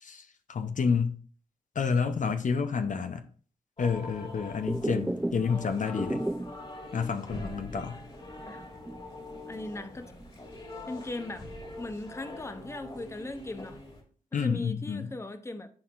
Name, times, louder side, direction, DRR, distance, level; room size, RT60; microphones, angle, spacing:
voice 1, 0.0-1.2 1.8-3.2 3.8-6.2 6.9-8.0 14.3-15.1, left 5 dB, 60° left, 0.7 m, -29 dB
sound 1, 3.8-14.0, left 2 dB, 40° left, 2.3 m, -44 dB
sound 2, 4.7-5.6 5.8-6.7 7.1-7.2 7.6-7.7 8.2-9.6 9.9-10.6, right 1 dB, 5° right, 0.4 m, -34 dB
voice 2, 9.4-10.1 10.9-11.4 11.8-13.8 14.3-15.7, left 2 dB, 20° left, 0.7 m, -38 dB
11.5 x 4.3 x 2.5 m
cardioid pair, 55°, 14 cm